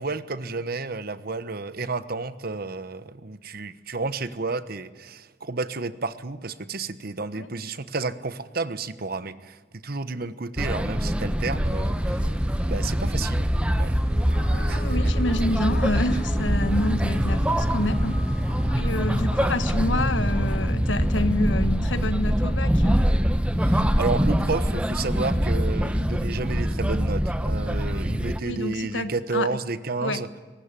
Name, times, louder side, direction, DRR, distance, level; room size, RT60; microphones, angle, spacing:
voice 1, 0.0-12.2 12.7-13.5 13.8-14.0 14.7-15.0 23.6-30.3, right 3 dB, 55° right, 13 dB, 1.2 m, -31 dB
sound 1, 10.6-28.4, equal, 5° right, 1.0 m, -24 dB
sound 2, 11.6-18.8, equal, 35° right, 3.1 m, -48 dB
sound 3, 13.9-19.7, left 2 dB, 30° left, 2.8 m, -43 dB
voice 2, 14.5-18.2 18.7-23.0 28.4-29.5 30.0-30.2, left 2 dB, 90° left, 11 dB, 1.5 m, -28 dB
22.5 x 19.0 x 9.1 m, 1.4 s
head